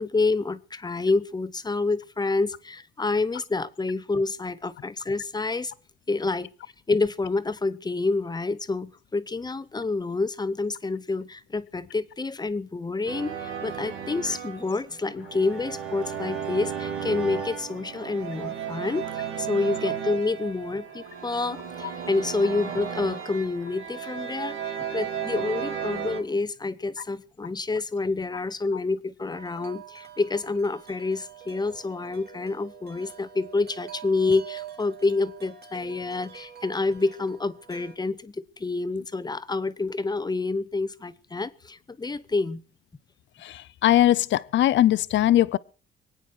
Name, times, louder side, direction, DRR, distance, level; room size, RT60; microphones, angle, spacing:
voice 1, 0.0-5.7 6.1-6.5 6.9-42.6, left 3 dB, 20° left, 0.8 m, -28 dB
sound 1, 13.1-26.2, right 8 dB, 85° right, 2.2 m, -34 dB
Wind chime, 29.3-38.0, right 10 dB, 55° right, 2.5 m, -45 dB
voice 2, 43.4-45.6, left 13 dB, 70° left, 0.6 m, -20 dB
24.5 x 9.1 x 4.6 m
cardioid pair, 90°, 20 cm